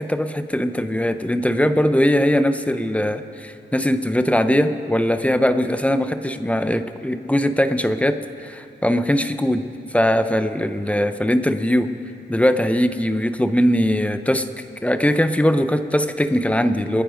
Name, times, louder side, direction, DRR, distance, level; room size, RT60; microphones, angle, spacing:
voice 1, 0.0-9.6 9.9-11.9 12.3-14.5 14.8-17.0, equal, 5° left, 9 dB, 0.6 m, -20 dB
27.0 x 10.0 x 5.1 m, 2.4 s
wide cardioid pair, 140°, 20 cm